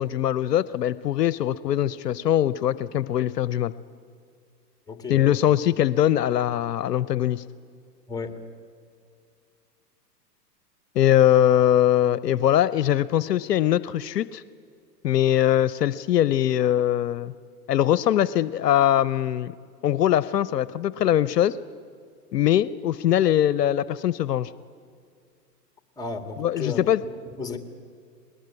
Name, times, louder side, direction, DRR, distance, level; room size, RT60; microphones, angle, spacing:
voice 1, 0.0-3.7 5.1-7.4 11.0-14.4 15.0-17.3 17.7-19.5 19.8-21.6 22.3-24.5 26.4-27.0, left 11 dB, 70° left, 18 dB, 0.7 m, -22 dB
voice 2, 4.9-5.4 8.1-8.4 26.0-26.8 27.4-27.6, left 4 dB, 5° left, 7 dB, 2.0 m, -33 dB
20.5 x 19.5 x 9.6 m, 2.2 s
hypercardioid pair, 105°, 49 cm